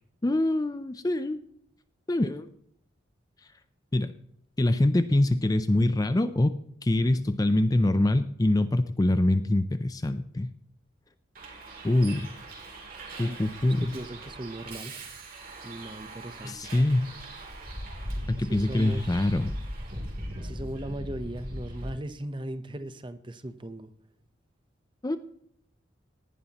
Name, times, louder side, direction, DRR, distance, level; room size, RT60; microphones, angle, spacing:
voice 1, 0.2-1.4 2.1-2.5 3.9-4.1 4.6-6.6 6.8-10.5 11.8-12.3 13.2-13.9 16.4-17.1 18.3-19.5 25.0-25.2, left 1 dB, 20° left, 11 dB, 0.4 m, -24 dB
Bus, 11.3-21.9, right 1 dB, 45° right, 3.1 m, -39 dB
voice 2, 13.8-15.0 15.6-16.7 18.4-19.2 20.4-23.9, right 1 dB, 25° right, 11 dB, 0.8 m, -38 dB
18.5 x 11.0 x 2.9 m, 0.70 s
head